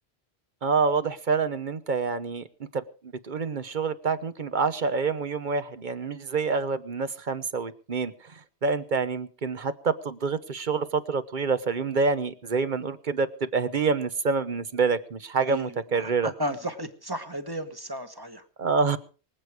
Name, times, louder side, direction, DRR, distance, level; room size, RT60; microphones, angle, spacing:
voice 1, 0.6-2.4 2.7-2.8 3.2-16.3 18.6-19.0, right 4 dB, 50° right, 13 dB, 1.0 m, -27 dB
voice 2, 15.4-18.4, right 1 dB, 20° right, 8 dB, 1.4 m, -34 dB
24.0 x 8.2 x 4.8 m, 0.37 s
omnidirectional pair, 1.1 m